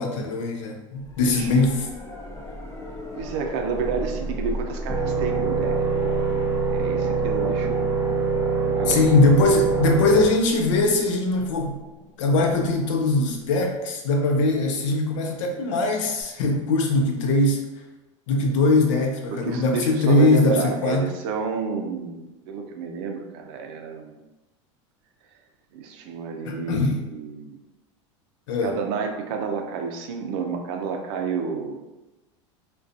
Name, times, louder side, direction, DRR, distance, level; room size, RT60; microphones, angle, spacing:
voice 1, 0.0-1.9 8.9-11.8 12.2-17.6 18.3-21.1 26.4-26.9 28.5-28.7, left 2 dB, 75° left, 3 dB, 0.5 m, -21 dB
sound 1, 1.0-13.9 16.2-16.3, equal, 15° left, 0.4 m, -37 dB
voice 2, 3.1-6.0 6.7-7.8 8.6-9.0 19.3-24.2 25.7-27.6 28.6-31.8, right 5 dB, 60° right, 4 dB, 0.5 m, -30 dB
sound 2, 4.9-10.3, right 5 dB, 15° right, 0.9 m, -24 dB
2.4 x 2.2 x 2.5 m, 1.1 s
hypercardioid pair, 100°, 16 cm